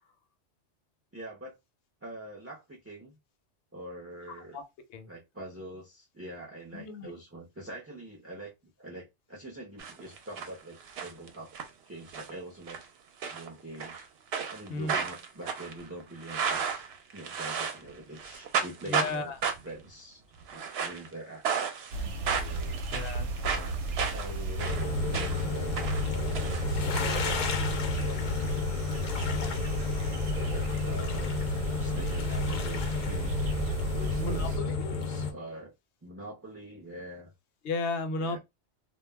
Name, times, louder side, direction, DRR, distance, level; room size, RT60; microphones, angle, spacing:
voice 1, 1.1-1.6 2.0-3.2 3.7-4.6 5.1-8.5 8.8-11.6 11.9-12.8 13.3-14.0 14.5-16.8 17.1-19.3 19.6-20.2 20.5-21.4 22.3-22.8 23.5-25.7 26.1-28.2 29.2-31.3 31.8-33.4 33.9-34.5 34.9-35.7 36.0-37.3 38.2-38.4, right 1 dB, 20° right, 0.4 m, -44 dB
voice 2, 6.7-7.1 14.7-14.9 18.9-19.4 22.9-23.3 34.2-35.0 37.6-38.4, left 3 dB, 75° left, 0.9 m, -34 dB
sound 1, 9.8-10.5 10.8-11.7 12.1-12.4 12.7-12.9 13.2-14.0 14.3-17.9 18.2-19.1 19.4-19.8 20.4-21.1 21.4-22.0 22.3-25.5 25.8-27.2, right 6 dB, 65° right, 0.8 m, -33 dB
sound 2, 21.9-34.6, right 2 dB, 90° right, 0.9 m, -34 dB
sound 3, 24.6-35.3, left 5 dB, 55° left, 0.5 m, -32 dB
2.2 x 2.0 x 3.2 m
omnidirectional pair, 1.2 m